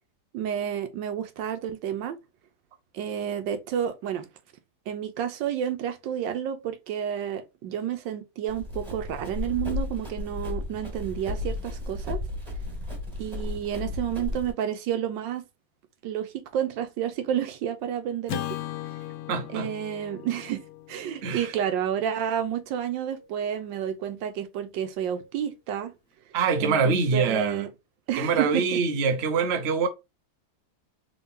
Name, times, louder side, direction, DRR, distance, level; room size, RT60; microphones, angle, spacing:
voice 1, 0.3-2.2 2.9-4.3 4.9-12.2 13.2-15.4 16.0-18.6 19.5-25.9 26.6-27.7 28.1-28.8, right 9 dB, 75° right, 1.2 m, -30 dB
Run, 8.5-14.5, left 2 dB, 20° right, 1.9 m, -34 dB
Acoustic guitar / Strum, 18.3-22.7, left 12 dB, 85° left, 0.7 m, -38 dB
voice 2, 19.3-19.7 21.2-21.5 26.3-27.6 28.2-29.9, right 5 dB, 55° right, 0.7 m, -24 dB
3.8 x 3.6 x 2.6 m
omnidirectional pair, 2.1 m